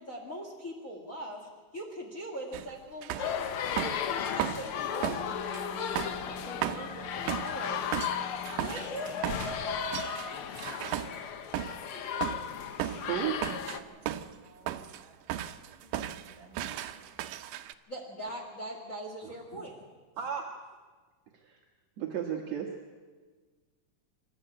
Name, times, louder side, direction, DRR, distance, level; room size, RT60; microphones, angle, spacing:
voice 1, 0.0-3.5 4.1-8.0 8.5-10.5 17.9-19.7, equal, 30° left, 1 dB, 2.1 m, -41 dB
sound 1, 2.5-2.7 3.0-4.8 5.0-11.9 12.2-12.5 12.8-14.4 14.7-15.0 15.3-17.7, right 12 dB, 85° right, 2.3 m, -36 dB
sound 2, 3.2-13.8, left 8 dB, 70° left, 1.3 m, -35 dB
Wind instrument woodwind instrument, 5.1-10.5, right 1 dB, 5° left, 5.0 m, -49 dB
voice 2, 11.8-12.6 12.9-13.1 13.5-16.9, right 3 dB, 45° right, 3 dB, 4.8 m, -54 dB
voice 3, 13.1-13.4 19.2-19.6 20.2-20.5 21.3-21.6 22.0-22.7, right 9 dB, 65° right, 0 dB, 2.5 m, -34 dB
27.0 x 13.0 x 8.8 m, 1.4 s
omnidirectional pair, 3.6 m